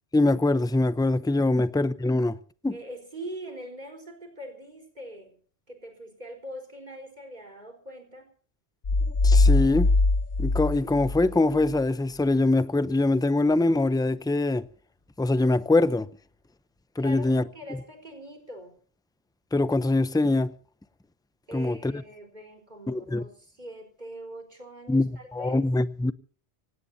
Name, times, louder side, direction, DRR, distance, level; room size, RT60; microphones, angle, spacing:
voice 1, 0.1-2.4 2.6-2.8 9.2-9.9 10.4-14.6 15.2-16.1 17.0-17.4 19.5-20.5 21.5-21.9 22.9-23.2 24.9-26.1, left 2 dB, 5° left, 0.5 m, -23 dB
voice 2, 2.7-5.3 5.7-8.3 17.0-18.8 21.5-25.7, right 1 dB, 40° right, 4.5 m, -42 dB
sound 1, 8.8-11.8, left 2 dB, 50° left, 1.2 m, -22 dB
25.0 x 18.0 x 2.8 m
omnidirectional pair, 1.1 m